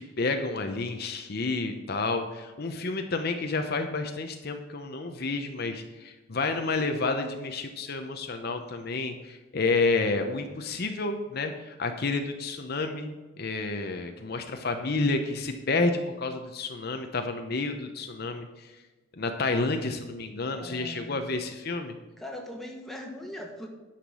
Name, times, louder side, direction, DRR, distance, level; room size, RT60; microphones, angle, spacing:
voice 1, 0.0-18.7 19.2-21.9, left 3 dB, 55° left, 6 dB, 0.8 m, -30 dB
voice 2, 20.5-21.2 22.2-23.7, left 1 dB, ahead, 0 dB, 1.5 m, -40 dB
10.0 x 5.9 x 6.2 m, 1.2 s
head